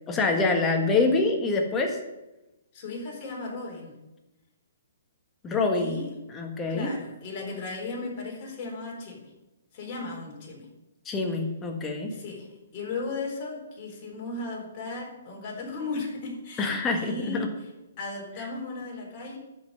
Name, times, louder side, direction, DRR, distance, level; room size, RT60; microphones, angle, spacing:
voice 1, 0.1-2.0 5.4-6.0 6.3-6.9 11.0-12.1 16.6-17.5 18.4-18.5, left 3 dB, 15° left, 3 dB, 1.5 m, -25 dB
voice 2, 2.7-3.9 5.7-6.2 6.7-9.3 9.7-10.7 12.1-12.5 12.7-17.5 18.0-19.4, left 3 dB, 30° left, -3 dB, 4.0 m, -36 dB
11.0 x 5.5 x 7.8 m, 0.99 s
hypercardioid pair, 155°, 0 cm